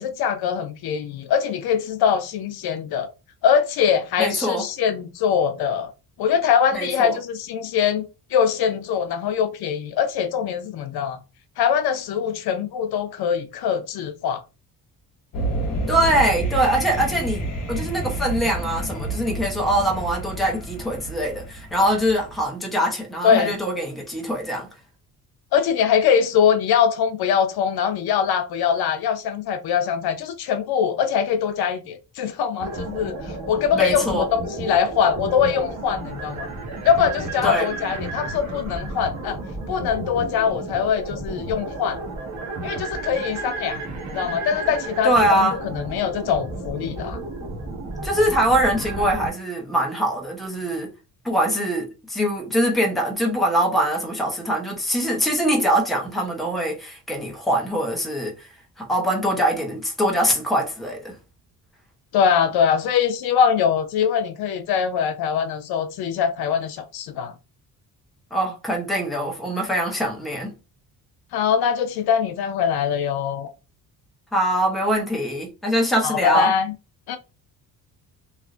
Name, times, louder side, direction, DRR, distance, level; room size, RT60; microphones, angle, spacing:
voice 1, 0.0-3.1 3.4-5.9 6.2-8.0 8.3-11.2 11.6-14.4 23.2-23.5 25.5-33.2 33.5-36.5 36.8-39.4 39.7-42.0 42.6-43.8 44.1-47.2 62.1-67.3 71.3-73.5 76.0-76.7 77.1-77.2, left 7 dB, 75° left, 0.6 m, -22 dB
voice 2, 4.2-4.6 6.7-7.2 15.9-24.7 33.8-34.3 37.4-37.7 45.0-45.6 48.0-50.9 51.2-58.5 58.8-61.1 68.3-70.5 74.3-76.5, right 1 dB, ahead, 0.6 m, -23 dB
sound 1, 15.3-22.5, right 2 dB, 60° left, 1.0 m, -29 dB
sound 2, 32.6-49.3, right 2 dB, 45° right, 1.0 m, -32 dB
3.2 x 2.5 x 2.4 m
cardioid pair, 170°, 38 cm